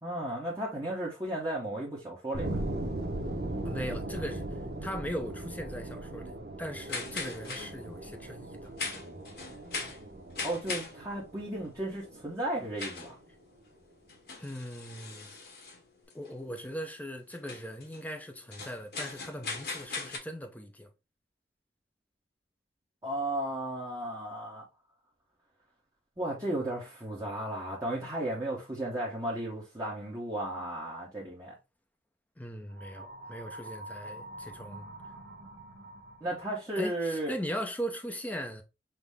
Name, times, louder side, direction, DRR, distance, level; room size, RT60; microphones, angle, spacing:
voice 1, 0.0-2.6 10.4-13.1 23.0-24.6 26.2-31.5 36.2-37.3, right 1 dB, 20° right, 1.0 m, -34 dB
sound 1, 2.3-13.1, right 1 dB, 60° right, 0.8 m, -39 dB
voice 2, 3.6-8.7 14.4-15.3 16.1-20.9 32.4-34.8 36.8-38.6, equal, 10° left, 0.6 m, -39 dB
sound 2, 6.9-20.2, left 4 dB, 60° left, 1.0 m, -40 dB
sound 3, 32.7-36.7, right 1 dB, 80° right, 1.6 m, -46 dB
5.9 x 2.1 x 3.4 m
head